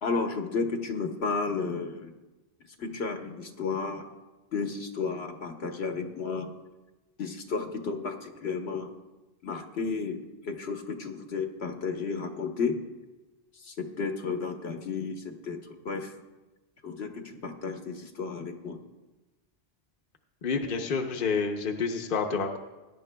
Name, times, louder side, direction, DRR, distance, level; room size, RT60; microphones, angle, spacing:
voice 1, 0.0-2.1 2.8-4.1 4.5-6.5 7.2-8.9 9.4-12.8 13.5-16.1 16.8-18.8, left 4 dB, 70° left, 4 dB, 1.3 m, -33 dB
voice 2, 20.4-22.6, left 5 dB, 55° left, 3 dB, 1.0 m, -29 dB
20.5 x 10.5 x 2.3 m, 1.1 s
omnidirectional pair, 1.1 m